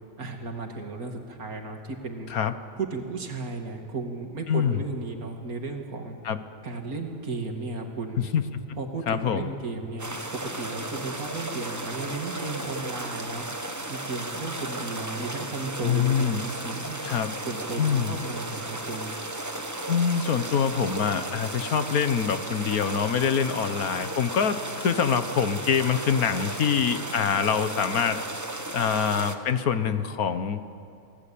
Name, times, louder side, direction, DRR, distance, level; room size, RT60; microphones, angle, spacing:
voice 1, 0.2-2.3 2.8-6.2 6.6-8.2 8.8-13.4 13.9-17.0 17.4-19.1, right 3 dB, 75° right, 3 dB, 2.9 m, -34 dB
voice 2, 4.5-4.8 6.2-6.4 8.3-8.4 9.1-9.5 15.8-16.4 17.0-17.3 17.8-18.1 19.9-28.2 28.7-30.6, left 7 dB, 75° left, 10 dB, 1.6 m, -25 dB
sound 1, 10.0-29.4, right 1 dB, 15° right, 1.2 m, -35 dB
29.0 x 19.5 x 8.7 m, 2.6 s
omnidirectional pair, 1.5 m